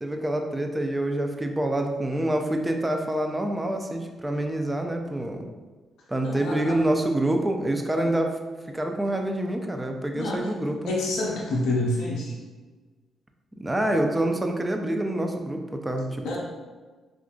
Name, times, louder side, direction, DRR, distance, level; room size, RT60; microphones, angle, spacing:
voice 1, 0.0-5.4 6.1-8.4 8.7-10.9 13.6-16.4, right 1 dB, 15° right, 4 dB, 0.4 m, -26 dB
voice 2, 6.3-6.8 10.1-10.6 10.9-12.4 16.2-16.4, left 2 dB, 85° left, -4 dB, 0.5 m, -28 dB
3.5 x 2.4 x 2.3 m, 1.3 s
cardioid pair, 80°, 0 cm